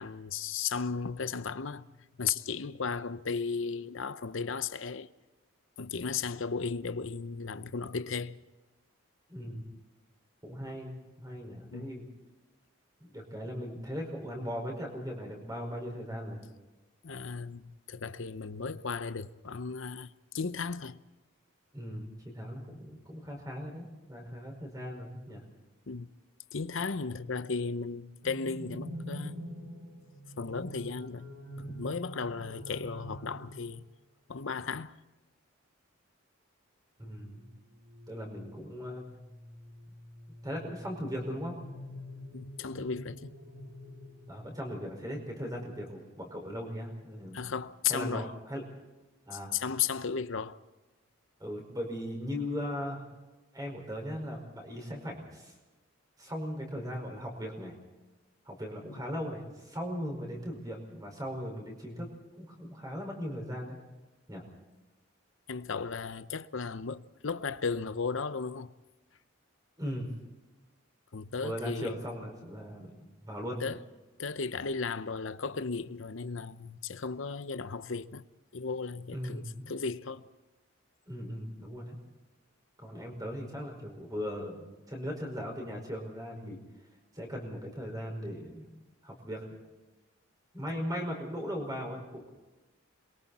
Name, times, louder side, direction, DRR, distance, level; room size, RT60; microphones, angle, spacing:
voice 1, 0.0-1.9 2.2-5.1 5.8-8.4 11.7-11.9 17.0-21.0 25.9-26.1 26.5-29.4 30.4-31.3 31.7-33.8 34.3-34.9 42.3-43.3 47.3-48.3 49.3-50.6 58.9-59.0 65.5-68.7 71.1-72.0 73.6-73.8 74.2-78.3 78.5-80.3, left 5 dB, 65° left, 0.7 m, -35 dB
voice 2, 9.3-9.7 10.4-12.0 13.0-16.4 21.7-25.4 31.6-31.7 37.0-37.5 38.1-39.0 40.4-41.6 44.3-47.4 47.9-48.6 49.3-49.5 51.4-53.0 53.5-55.5 56.2-57.7 58.4-62.1 62.4-63.8 64.3-64.4 69.8-70.1 71.4-73.6 79.1-79.7 81.1-82.0 82.8-86.6 87.1-88.7 89.0-89.6 90.5-92.3, equal, 15° right, 5.1 m, -38 dB
sound 1, 28.2-33.8 37.1-44.8, equal, 55° right, 2.5 m, -46 dB
28.0 x 22.5 x 4.2 m
head